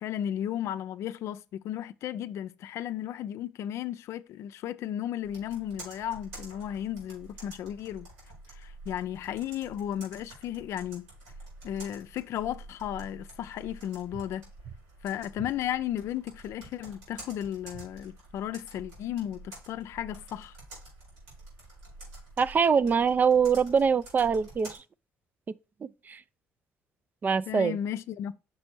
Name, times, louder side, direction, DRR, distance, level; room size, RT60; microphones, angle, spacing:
voice 1, 0.0-8.1 8.5-11.1 11.6-14.5 15.0-20.6 27.5-28.4, left 11 dB, 65° left, 0.4 m, -34 dB
Computer keyboard, 5.2-24.8, right 2 dB, 90° right, 4.4 m, -49 dB
sound 1, 14.1-14.3 14.6-14.9 15.3-15.6 17.6-17.9, right 7 dB, 55° right, 1.4 m, -45 dB
voice 2, 22.4-24.8 26.1-26.2 27.2-27.8, right 6 dB, 35° right, 0.4 m, -23 dB
6.1 x 4.3 x 4.5 m
supercardioid pair, 65°, 5 cm